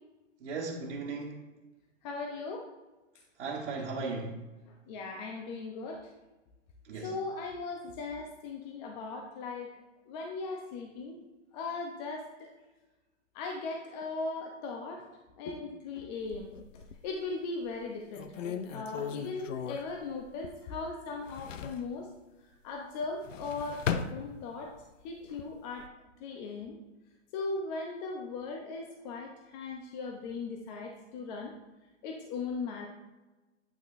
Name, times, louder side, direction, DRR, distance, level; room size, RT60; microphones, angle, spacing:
voice 1, 0.4-1.4 3.4-4.3 6.9-7.1, right 4 dB, 70° right, -5 dB, 1.5 m, -36 dB
voice 2, 2.0-2.7 4.9-6.1 7.0-9.8 10.1-11.2 11.5-12.5 13.3-15.0 15.4-16.5 17.0-22.1 22.6-24.7 25.0-25.9 26.2-26.8 27.3-31.5 32.0-32.9, left 3 dB, 35° left, 1 dB, 0.8 m, -38 dB
sound 1, 16.2-17.2 17.7-17.8 18.1-20.8 21.1-21.9 23.0-24.8 25.2-25.9, left 7 dB, 90° left, 0.6 m, -38 dB
8.8 x 5.8 x 2.6 m, 1.1 s
hypercardioid pair, 135°, 37 cm